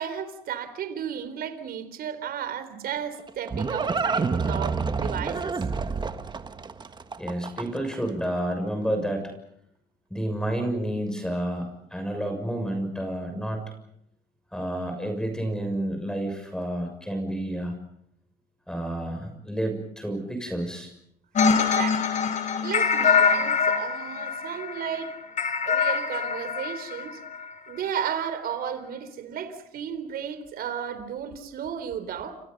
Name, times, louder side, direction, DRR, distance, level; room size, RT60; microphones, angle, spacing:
voice 1, 0.0-5.5 21.6-22.1 22.6-25.1 25.6-27.2 27.7-32.3, right 8 dB, 65° right, 4.0 m, -33 dB
Livestock farm animals working animals, 2.9-7.9, right 4 dB, 25° right, 1.5 m, -28 dB
voice 2, 7.2-9.3 10.1-13.7 14.5-17.8 18.7-20.9, right 1 dB, 5° left, 6.6 m, -30 dB
sound 1, 21.4-27.5, left 6 dB, 45° left, 5.2 m, -24 dB
29.5 x 29.0 x 5.5 m
cardioid pair, 110°, 17 cm